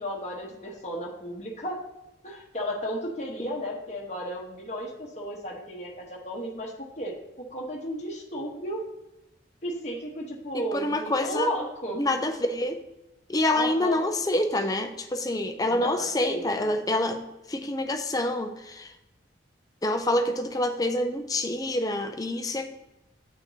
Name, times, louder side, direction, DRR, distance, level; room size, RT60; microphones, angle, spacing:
voice 1, 0.0-1.8 2.2-7.1 7.5-8.8 9.6-12.0 13.5-14.1 15.6-16.7, equal, 35° left, -3 dB, 1.2 m, -33 dB
voice 2, 10.5-11.5 12.0-12.8 13.3-17.2 17.5-18.9 19.8-22.7, left 1 dB, 20° left, 7 dB, 0.5 m, -27 dB
8.6 x 6.3 x 2.8 m, 0.96 s
head